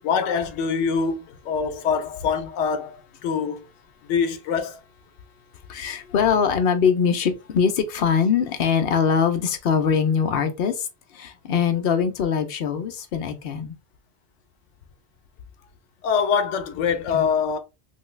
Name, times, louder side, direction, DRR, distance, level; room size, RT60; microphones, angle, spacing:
voice 1, 0.0-3.7 4.0-4.8 16.0-17.6, left 6 dB, 90° left, 0.9 m, -24 dB
voice 2, 5.7-10.9 11.1-13.8 17.1-17.2, left 6 dB, 65° left, 0.8 m, -22 dB
3.2 x 2.3 x 3.1 m
omnidirectional pair, 1.2 m